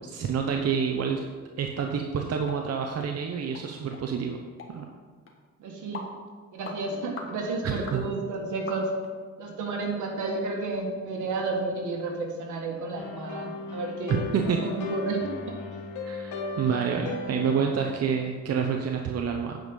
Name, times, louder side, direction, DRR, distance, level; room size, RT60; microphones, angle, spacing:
voice 1, 0.1-1.2 1.6-4.4 4.7-4.9 7.6-8.0 14.1-14.6 16.0-19.6, right 6 dB, 55° right, 3 dB, 0.8 m, -28 dB
sound 1, 2.5-2.6 3.0-3.1 3.5-3.7 3.9-4.0 4.6-4.7 5.3-5.4 5.9-6.1 6.6-6.8 7.2-7.3 7.9-8.0 8.7-9.1 9.6-9.7 10.2-10.3 10.7-10.8, left 3 dB, 45° left, 1.6 m, -41 dB
voice 2, 5.6-6.1 6.5-8.9 9.4-14.3 14.6-15.2 15.5-15.6, right 3 dB, 80° right, 1 dB, 1.8 m, -31 dB
sound 2, 13.0-18.0, left 3 dB, 90° left, 1.3 m, -36 dB
9.3 x 5.2 x 5.4 m, 1.5 s
cardioid pair, 90°, 30 cm